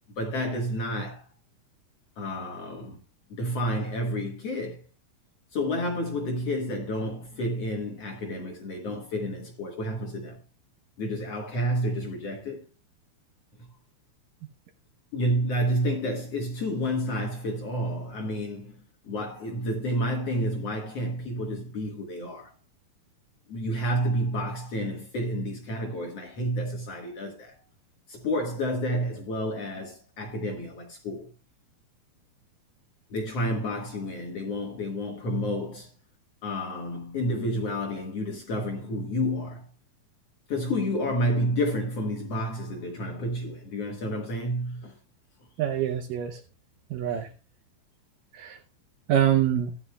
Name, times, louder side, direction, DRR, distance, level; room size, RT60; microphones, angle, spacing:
voice 1, 0.1-1.3 2.2-3.0 3.3-4.8 5.5-10.4 11.0-12.7 13.6-13.7 15.1-18.8 19.0-22.5 23.5-27.6 28.1-31.3 33.1-35.9 36.4-39.7 40.5-45.0, equal, 55° left, 1.9 m, -30 dB
voice 2, 45.6-46.4 46.9-47.3 48.3-48.6 49.1-49.7, right 10 dB, 75° right, 2.1 m, -25 dB
14.5 x 11.0 x 2.2 m
omnidirectional pair, 4.6 m